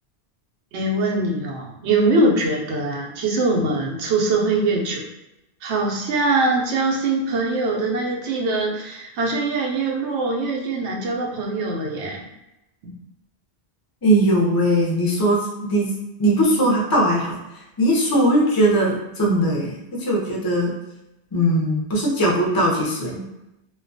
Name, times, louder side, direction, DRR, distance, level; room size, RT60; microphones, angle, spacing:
voice 1, 0.7-5.1 5.6-12.3 12.8-12.9, right 2 dB, 90° right, -1 dB, 0.9 m, -22 dB
voice 2, 14.0-15.9 16.2-17.4 17.8-20.7 21.3-23.2, right 1 dB, 30° left, -3 dB, 0.4 m, -19 dB
2.3 x 2.2 x 2.5 m, 0.92 s
omnidirectional pair, 1.1 m